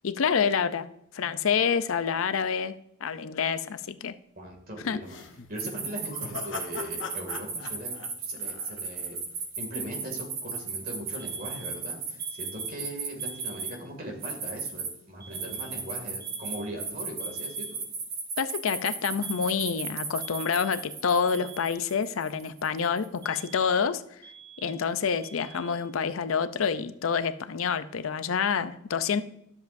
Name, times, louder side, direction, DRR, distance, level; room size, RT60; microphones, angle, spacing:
voice 1, 0.0-0.9 1.1-4.1 4.8-5.0 18.4-24.0 24.6-29.2, left 6 dB, 90° left, 13 dB, 0.5 m, -27 dB
voice 2, 4.4-5.2 5.5-9.2 9.6-17.8, equal, 45° right, 2 dB, 2.4 m, -40 dB
sound 1, 5.0-9.2, left 5 dB, 65° left, 0.9 m, -41 dB
sound 2, 5.6-13.7 14.2-14.9 15.3-23.2, right 5 dB, 75° right, 2.6 m, -35 dB
sound 3, 11.2-11.9 12.2-12.9 13.2-13.9 15.2-15.9 16.2-16.9 17.2-17.9 19.2-19.9 20.2-20.9 21.2-21.9 23.2-23.9 24.2-24.9 25.2-25.9, right 7 dB, 20° right, 1.1 m, -49 dB
12.5 x 7.2 x 2.6 m, 0.76 s
head